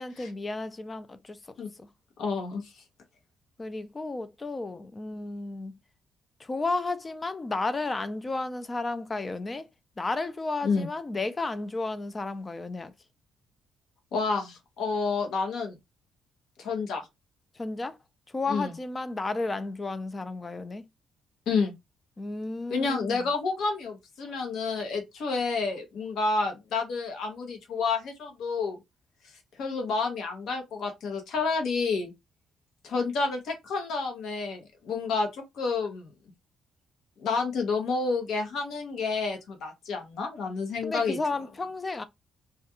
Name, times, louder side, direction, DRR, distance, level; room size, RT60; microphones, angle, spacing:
voice 1, 0.0-1.4 1.8-1.9 3.6-5.8 6.4-9.7 10.0-12.9 17.5-18.0 18.3-20.8 22.2-23.3 40.8-42.0, left 3 dB, 25° left, 0.4 m, -33 dB
voice 2, 2.2-2.7 10.6-10.9 14.1-15.7 16.6-17.1 18.5-18.7 21.5-21.7 22.7-28.8 29.6-32.1 32.8-36.1 37.2-41.2, left 4 dB, 75° left, 0.9 m, -29 dB
2.3 x 2.3 x 2.8 m
cardioid pair, 90°, 0 cm